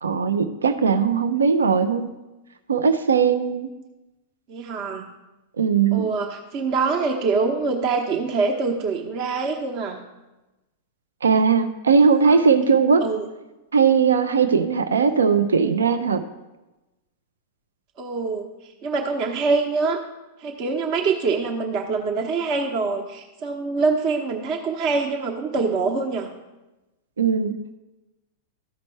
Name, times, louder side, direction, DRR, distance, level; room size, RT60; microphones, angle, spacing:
voice 1, 0.0-2.1 2.7-3.7 5.6-6.1 11.2-13.0 13.7-16.2 27.2-27.5, right 6 dB, 75° right, 10 dB, 0.5 m, -19 dB
voice 2, 4.5-5.0 5.9-10.0 12.2-12.7 13.0-13.3 18.0-20.0 20.4-26.3, right 4 dB, 45° right, 2 dB, 0.9 m, -25 dB
13.5 x 5.1 x 3.2 m, 1.0 s
figure-of-eight pair, 95°, 0 cm